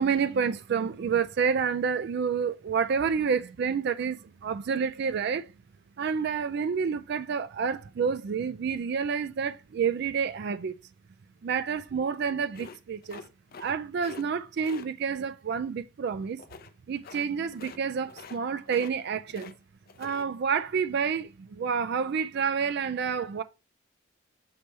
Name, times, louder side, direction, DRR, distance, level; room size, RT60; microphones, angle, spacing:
voice 1, 0.0-5.5 6.0-10.7 11.4-13.2 13.6-16.4 16.9-19.5 20.0-23.4, right 6 dB, 55° right, 0.3 m, -29 dB
sound 1, 12.5-13.7 14.0-14.2 14.6-14.9 16.4-16.7 17.0-17.3 17.5-17.8 18.1-18.4 18.7-19.5 19.9-20.2, left 4 dB, 45° left, 0.5 m, -46 dB
6.8 x 3.3 x 4.2 m
head